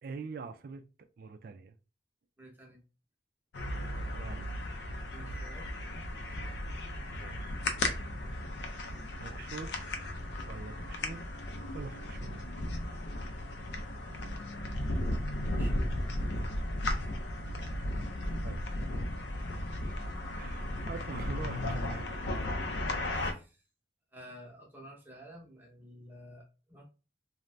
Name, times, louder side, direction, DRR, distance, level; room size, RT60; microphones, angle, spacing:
voice 1, 0.0-0.8 1.2-1.8 4.1-4.9 7.1-7.6 9.2-9.9 10.4-11.2 11.7-12.4 18.4-18.7 20.3-22.0, right 4 dB, 55° right, 0.3 m, -44 dB
voice 2, 2.4-2.8 5.1-5.7 15.5-15.9 23.2-23.6 24.1-26.8, equal, 10° right, 0.7 m, -51 dB
sound 1, 3.5-23.3, left 1 dB, 70° left, 0.4 m, -35 dB
2.5 x 2.1 x 3.2 m
head